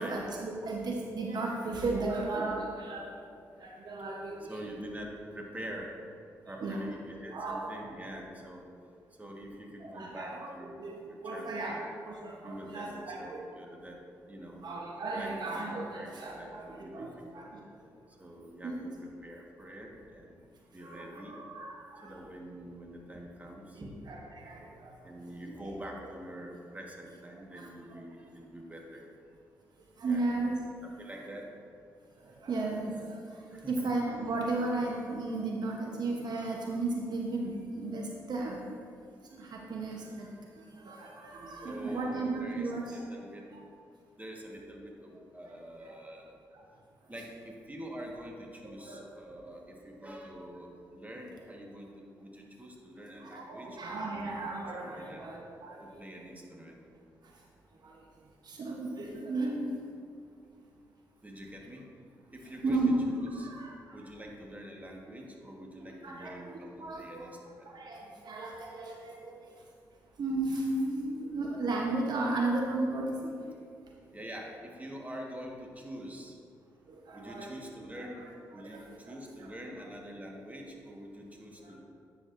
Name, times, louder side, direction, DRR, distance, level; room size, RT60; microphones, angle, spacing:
voice 1, 0.0-3.1 3.6-4.6 6.6-6.8 7.3-7.7 9.8-10.5 10.8-11.8 12.1-13.4 14.6-17.6 18.6-18.8 20.8-22.1 23.7-24.9 25.4-25.7 27.5-27.7 30.0-30.6 32.2-38.7 39.3-40.3 40.7-43.0 48.8-49.1 53.2-55.8 57.8-58.0 58.4-59.7 62.6-64.1 65.8-67.3 67.6-69.4 70.2-73.2 76.9-77.5 78.5-79.1 79.4-79.5 81.6-81.7, right 2 dB, 60° right, -1 dB, 0.9 m, -35 dB
voice 2, 4.4-5.9 6.5-8.6 9.2-10.7 11.1-11.8 12.4-14.7 15.1-17.5 18.2-20.4 20.7-21.4 22.0-23.9 25.0-29.0 30.1-30.3 30.8-31.5 33.5-33.7 39.7-40.2 41.6-43.5 44.2-46.4 47.1-54.3 54.8-55.2 55.8-56.8 61.2-61.8 62.3-62.8 63.1-63.5 63.9-67.7 74.1-76.4 77.1-78.3 78.5-81.8, equal, 20° right, 0 dB, 1.4 m, -45 dB
9.8 x 6.3 x 2.6 m, 2.3 s
supercardioid pair, 50°, 8 cm